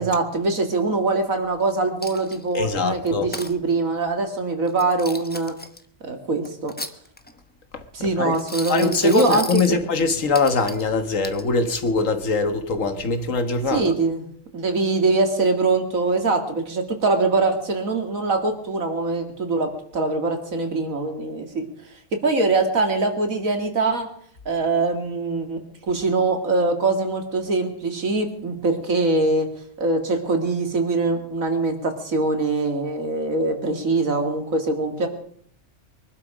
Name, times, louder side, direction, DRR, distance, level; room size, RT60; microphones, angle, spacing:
voice 1, 0.0-5.6 6.0-6.7 7.9-9.8 13.7-14.2 14.5-21.6 22.1-24.1 24.5-25.6 25.9-29.5 29.8-35.1, right 3 dB, 85° right, 2.6 m, -23 dB
Coin (dropping), 2.0-2.6 3.1-3.5 4.7-5.8 6.4-7.4 8.3-9.7 10.3-10.9 11.2-11.9, left 1 dB, 10° left, 0.8 m, -35 dB
voice 2, 2.5-3.3 7.7-8.4 8.7-13.9, left 4 dB, 70° left, 1.7 m, -22 dB
23.0 x 12.0 x 5.0 m
omnidirectional pair, 1.4 m